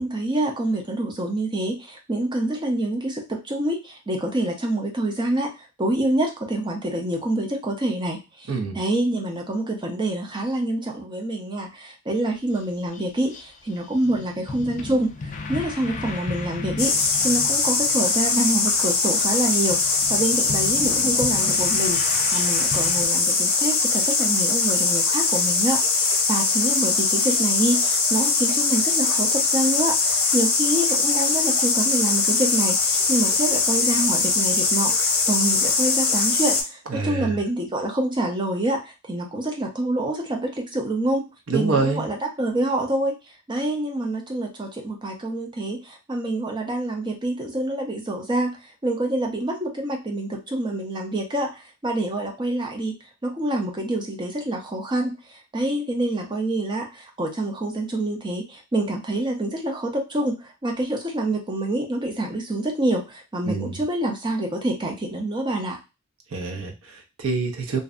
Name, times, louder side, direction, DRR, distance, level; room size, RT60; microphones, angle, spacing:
voice 1, 0.0-5.5 5.8-8.5 8.7-41.2 41.5-43.1 43.5-48.6 48.8-52.9 53.2-55.2 55.5-65.8, right 1 dB, 20° right, 2 dB, 0.5 m, -26 dB
sound 1, 12.5-12.6 12.9-13.0 13.3-23.1, left 3 dB, 35° left, 0.3 m, -35 dB
sound 2, 16.8-36.6, left 4 dB, 75° left, 0.7 m, -21 dB
voice 2, 36.9-37.4 41.5-42.1 63.4-63.8 66.3-67.8, right 4 dB, 80° right, 4 dB, 0.6 m, -26 dB
2.6 x 2.1 x 2.4 m, 0.27 s
head